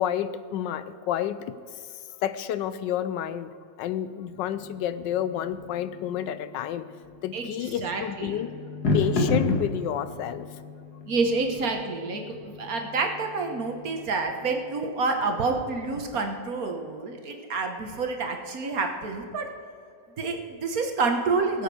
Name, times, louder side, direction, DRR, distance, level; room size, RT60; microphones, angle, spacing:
voice 1, 0.0-1.5 2.2-6.9 7.2-8.5 8.9-10.5, left 10 dB, 80° left, 13 dB, 1.2 m, -30 dB
sound 1, 4.3-15.1, left 2 dB, 55° left, 2.1 m, -33 dB
voice 2, 7.3-8.4 11.1-19.5 20.2-21.6, right 4 dB, 55° right, 4 dB, 1.5 m, -28 dB
20.0 x 8.0 x 4.8 m, 2.5 s
omnidirectional pair, 2.0 m